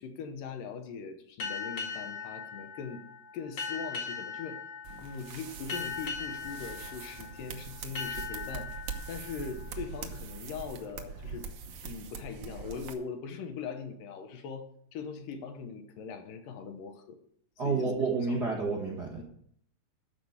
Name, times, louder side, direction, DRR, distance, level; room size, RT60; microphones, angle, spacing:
voice 1, 0.0-3.0 3.3-4.6 4.9-8.7 9.1-11.5 11.8-17.2 17.6-17.9 18.3-18.5 19.2-19.3, left 6 dB, 75° left, 6 dB, 2.7 m, -41 dB
sound 1, 1.4-10.7, left 5 dB, 40° left, 2.0 m, -40 dB
sound 2, 4.8-12.9, right 6 dB, 80° right, 1.2 m, -43 dB
voice 2, 17.6-19.2, right 4 dB, 45° right, -3 dB, 1.5 m, -30 dB
13.5 x 5.1 x 8.0 m, 0.66 s
omnidirectional pair, 4.0 m